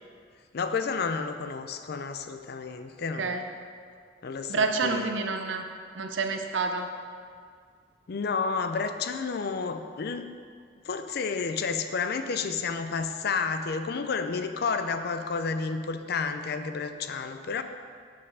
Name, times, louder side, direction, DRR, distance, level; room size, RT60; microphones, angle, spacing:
voice 1, 0.5-3.4 4.2-5.1 8.1-10.3 10.9-17.6, left 5 dB, 60° left, 9 dB, 0.5 m, -31 dB
voice 2, 4.5-5.6 6.0-6.9, right 4 dB, 85° right, 5 dB, 0.7 m, -28 dB
6.7 x 5.4 x 5.5 m, 2.1 s
head